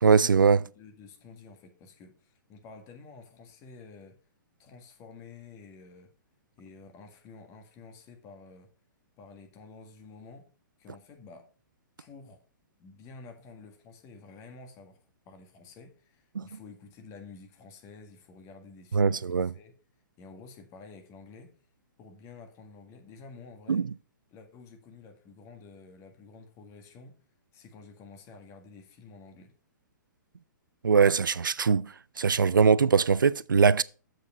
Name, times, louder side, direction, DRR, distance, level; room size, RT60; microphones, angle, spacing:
voice 1, 0.0-0.7 16.4-16.5 18.9-19.5 23.7-23.9 30.8-33.8, right 5 dB, 80° right, 0.4 m, -22 dB
voice 2, 0.6-4.2 4.6-6.1 6.6-8.7 9.2-10.5 10.8-11.5 12.0-12.4 12.8-19.8 20.2-21.6 22.0-23.9 24.3-27.2 27.5-29.5, left 4 dB, 30° left, 1.7 m, -50 dB
7.5 x 5.2 x 5.4 m
figure-of-eight pair, 120°, 11 cm